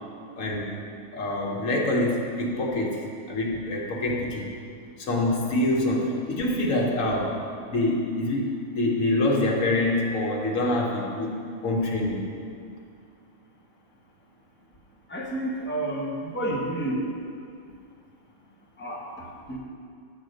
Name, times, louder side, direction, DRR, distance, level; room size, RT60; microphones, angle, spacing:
voice 1, 0.4-0.7 1.1-3.0 3.3-4.5 5.0-7.4 7.7-12.3, left 1 dB, 80° left, -1 dB, 1.5 m, -25 dB
voice 2, 15.1-17.0 18.8-19.6, right 1 dB, 10° left, -3 dB, 0.9 m, -30 dB
9.4 x 4.3 x 6.4 m, 2.3 s
omnidirectional pair, 1.3 m